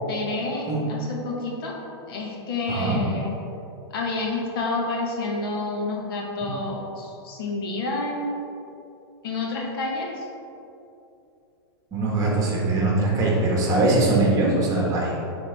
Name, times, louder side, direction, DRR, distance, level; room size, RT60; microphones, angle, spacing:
voice 1, 0.1-1.8 2.1-3.3 3.9-8.4 9.2-10.3, left 3 dB, 65° left, -1 dB, 1.4 m, -29 dB
voice 2, 2.7-3.0 6.4-6.5 11.9-15.1, right 2 dB, 25° right, -3 dB, 1.4 m, -22 dB
9.8 x 3.7 x 3.4 m, 2.8 s
hypercardioid pair, 145°, 13 cm